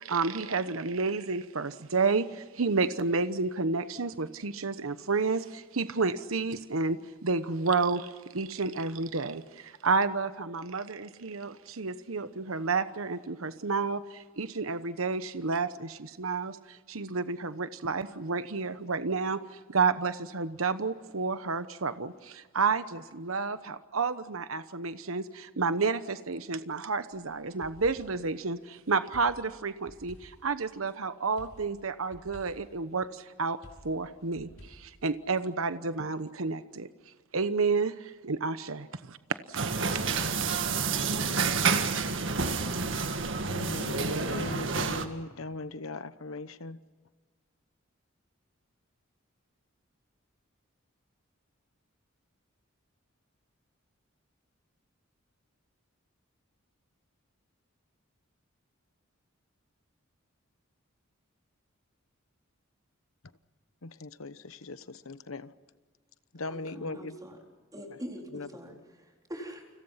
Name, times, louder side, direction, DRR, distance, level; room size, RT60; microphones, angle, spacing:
voice 1, 0.0-19.4 19.7-36.9 37.3-39.7, right 4 dB, 90° right, 1.1 m, -30 dB
sound 1, 27.1-28.3 29.1-30.9 31.4-32.8 33.6-35.4, equal, 70° left, 6.4 m, -53 dB
sound 2, 39.6-45.1, right 4 dB, 65° right, 1.9 m, -29 dB
voice 2, 43.5-46.8 63.8-65.5 66.3-67.1 68.3-68.5, left 2 dB, 90° left, 1.1 m, -39 dB
voice 3, 66.5-67.4 67.7-69.7, equal, 20° right, 4.2 m, -43 dB
30.0 x 26.0 x 5.8 m
head